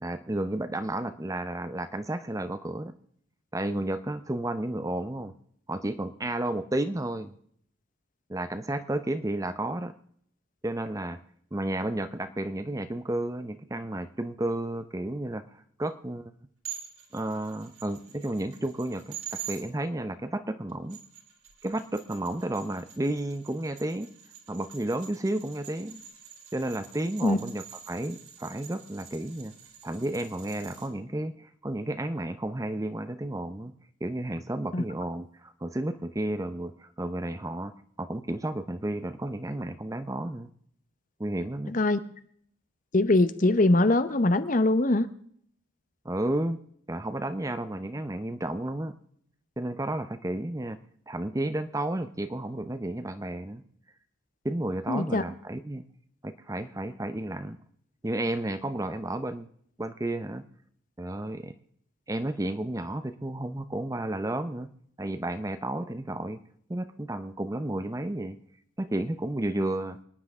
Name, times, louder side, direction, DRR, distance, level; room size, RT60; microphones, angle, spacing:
voice 1, 0.0-2.9 3.5-5.3 5.7-7.3 8.3-9.9 10.6-11.2 11.5-16.3 17.1-21.0 21.6-24.1 24.5-26.0 26.5-29.5 29.8-33.7 34.0-37.7 38.0-40.5 41.2-41.8 46.0-46.6 46.9-49.0 49.6-50.8 51.1-53.6 54.4-55.9 56.2-57.6 58.0-59.5 59.8-60.5 61.0-61.5 62.1-64.7 65.0-66.4 66.7-68.4 68.8-70.0, right 1 dB, 15° right, 11 dB, 0.6 m, -32 dB
sound 1, 16.6-19.6 20.7-30.9, right 10 dB, 85° right, 4.1 m, -46 dB
voice 2, 41.7-42.0 42.9-45.1 54.9-55.2, left 2 dB, 40° left, 12 dB, 0.8 m, -22 dB
25.0 x 10.0 x 3.6 m, 0.66 s
head